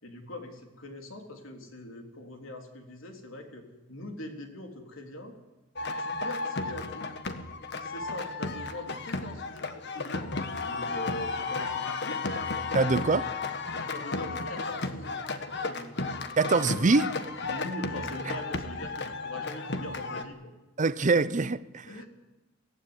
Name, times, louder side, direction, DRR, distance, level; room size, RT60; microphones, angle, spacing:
voice 1, 0.0-5.4 6.0-7.1 7.8-10.3 10.6-13.1 13.7-15.1 15.5-16.0 17.5-20.5 21.9-22.1, left 1 dB, 80° left, 4 dB, 3.5 m, -42 dB
sound 1, 5.7-20.2, left 3 dB, 60° left, 1.6 m, -33 dB
voice 2, 12.7-13.2 16.4-17.1 20.8-21.9, right 3 dB, 40° right, 16 dB, 0.7 m, -24 dB
23.0 x 15.5 x 9.8 m, 1.1 s
head